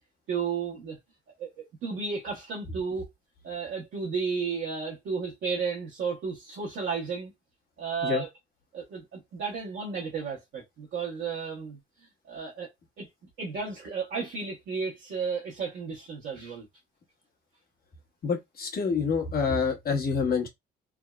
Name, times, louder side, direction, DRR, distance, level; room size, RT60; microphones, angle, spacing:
voice 1, 0.3-1.0 1.4-3.1 3.4-7.3 7.8-8.3 8.7-11.8 12.2-12.7 13.0-13.1 13.4-16.6, right 5 dB, 75° right, 1.1 m, -33 dB
voice 2, 18.2-20.5, left 5 dB, 50° left, 1.2 m, -27 dB
3.5 x 2.0 x 2.3 m
cardioid pair, 90°, 20 cm